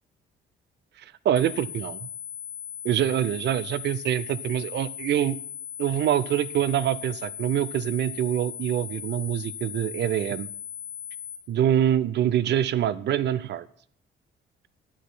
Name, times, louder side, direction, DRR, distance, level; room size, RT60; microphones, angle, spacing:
voice 1, 1.0-2.1 2.8-5.4 5.8-10.5 11.5-13.7, right 10 dB, 60° right, 17 dB, 0.5 m, -25 dB
sound 1, 1.4-11.4, left 9 dB, 70° left, 1.7 m, -38 dB
12.5 x 9.5 x 2.2 m, 0.64 s
cardioid pair, 90°, 20 cm